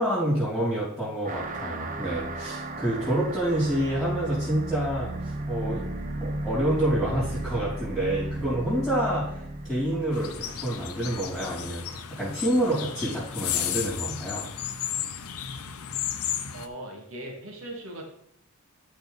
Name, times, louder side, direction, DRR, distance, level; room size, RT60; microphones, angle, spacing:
voice 1, 0.0-5.9 6.2-14.5, right 1 dB, ahead, -10 dB, 3.1 m, -28 dB
sound 1, 1.3-12.2, right 2 dB, 40° right, 0.8 m, -35 dB
sound 2, 10.1-16.7, left 10 dB, 85° left, 0.7 m, -33 dB
voice 2, 16.5-18.1, right 1 dB, 70° right, 1 dB, 2.1 m, -39 dB
12.0 x 4.4 x 4.1 m, 0.72 s
head